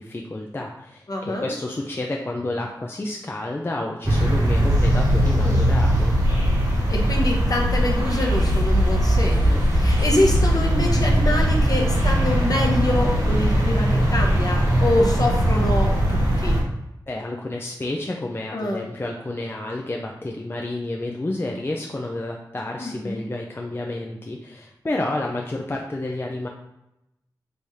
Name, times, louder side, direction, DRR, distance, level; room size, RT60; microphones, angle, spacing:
voice 1, 0.0-6.2 17.1-26.5, left 2 dB, 30° left, 0 dB, 0.4 m, -30 dB
voice 2, 1.1-1.5 5.4-5.6 6.7-16.6 18.5-18.9 22.8-23.2, left 1 dB, 50° left, 0 dB, 0.8 m, -26 dB
sound 1, 4.0-16.6, equal, 45° right, 1.4 m, -20 dB
3.4 x 3.2 x 2.7 m, 0.89 s
cardioid pair, 45°, 8 cm